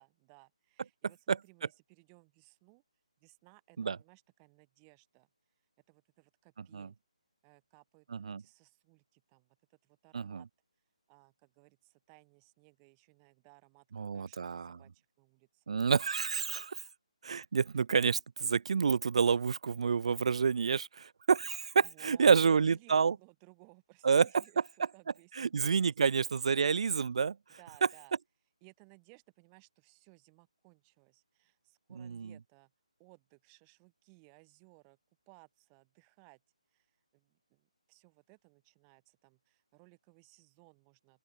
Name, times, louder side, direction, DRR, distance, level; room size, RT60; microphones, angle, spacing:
voice 1, 0.0-2.8 3.2-5.3 5.9-7.0 7.4-10.5 11.1-15.8 21.7-26.2 27.6-28.1 28.6-32.7 33.0-35.0 35.3-36.4 36.7-41.2, right 40 dB or more, 20° right, 4.3 m, -62 dB
voice 2, 14.0-14.7 15.7-16.8 17.2-23.1 24.0-24.3 25.4-27.4 32.0-32.3, right 6 dB, 60° right, 0.3 m, -28 dB
open air
figure-of-eight pair, 160°, 4 cm